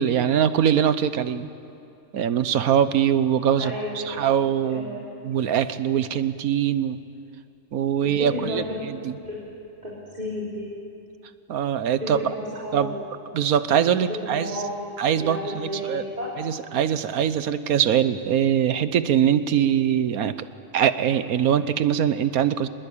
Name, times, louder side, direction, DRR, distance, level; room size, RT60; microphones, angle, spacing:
voice 1, 0.0-1.5 2.1-7.0 7.7-9.1 11.5-12.2 12.7-12.9 13.3-14.6 15.0-16.0 16.4-20.4 20.7-22.7, right 9 dB, 85° right, 13 dB, 1.4 m, -22 dB
voice 2, 3.6-5.1 8.0-8.8 9.2-9.4 9.8-10.7 12.0-13.0 14.2-14.9 15.2-16.3, left 1 dB, 30° right, -8 dB, 4.2 m, -32 dB
25.5 x 20.5 x 8.5 m, 2.6 s
omnidirectional pair, 1.5 m